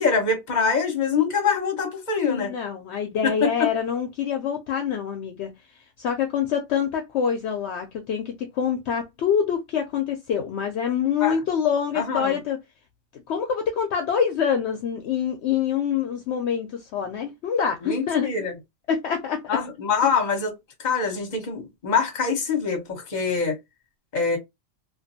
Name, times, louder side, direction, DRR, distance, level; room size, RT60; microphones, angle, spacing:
voice 1, 0.0-2.5 3.2-3.5 11.2-11.4 11.9-12.4 17.8-18.5 19.5-20.5 20.8-23.6 24.1-24.4, left 5 dB, 40° left, 0.9 m, -24 dB
voice 2, 2.2-5.5 6.0-12.6 13.3-18.3 18.9-19.6, left 7 dB, 70° left, 0.8 m, -25 dB
2.5 x 2.5 x 2.6 m
omnidirectional pair, 1.3 m